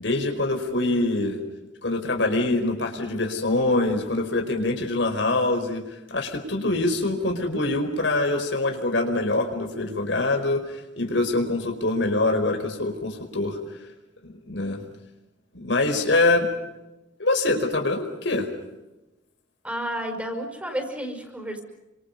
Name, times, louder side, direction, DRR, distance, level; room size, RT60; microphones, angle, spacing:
voice 1, 0.0-1.4 1.8-13.6 14.2-14.8 15.5-16.5 17.2-18.5, left 2 dB, 75° left, 5 dB, 4.9 m, -24 dB
voice 2, 19.6-21.6, equal, 5° right, 4 dB, 5.8 m, -31 dB
30.0 x 26.5 x 5.4 m, 1.0 s
head